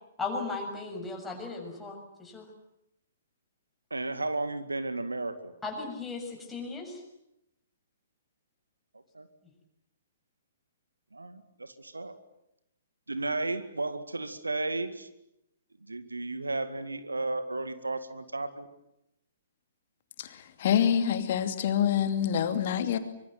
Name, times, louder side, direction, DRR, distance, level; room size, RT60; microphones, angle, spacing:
voice 1, 0.2-2.5 5.6-7.0, left 3 dB, 10° left, 0 dB, 6.9 m, -36 dB
voice 2, 3.9-5.5 9.1-9.3 11.1-12.2 13.1-15.1 15.8-18.7, right 2 dB, 80° right, 11 dB, 2.1 m, -33 dB
voice 3, 20.6-23.0, left 9 dB, 45° left, 9 dB, 2.7 m, -26 dB
24.5 x 23.5 x 9.3 m, 0.85 s
figure-of-eight pair, 120°, 0 cm